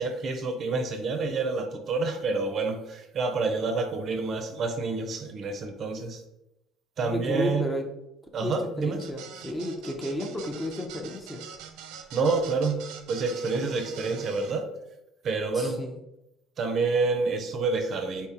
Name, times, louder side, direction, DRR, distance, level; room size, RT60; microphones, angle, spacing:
voice 1, 0.0-6.2 7.0-7.6 8.3-9.0 12.1-12.8 13.1-14.7 15.2-15.8 16.6-18.3, right 4 dB, 35° right, 6 dB, 0.5 m, -28 dB
voice 2, 7.0-7.9 8.4-11.4 15.5-16.0, left 1 dB, 15° left, 3 dB, 0.5 m, -32 dB
sound 1, 9.0-14.5, right 7 dB, 85° right, 0.5 m, -44 dB
4.4 x 3.5 x 2.8 m, 0.88 s
cardioid pair, 150°, 0 cm